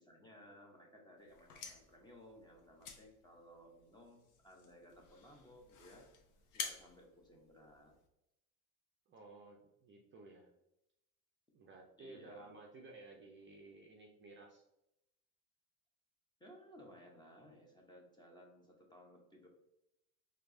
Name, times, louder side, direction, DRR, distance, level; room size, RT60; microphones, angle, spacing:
voice 1, 0.0-6.1 6.5-7.9 12.0-12.5 16.4-19.5, equal, 10° left, 0 dB, 0.7 m, -59 dB
sound 1, 1.2-8.1, left 6 dB, 45° left, 0.7 m, -50 dB
voice 2, 9.1-10.5 11.5-14.6, right 3 dB, 25° right, 0 dB, 0.6 m, -55 dB
4.4 x 2.9 x 2.6 m, 0.85 s
supercardioid pair, 120°, 44 cm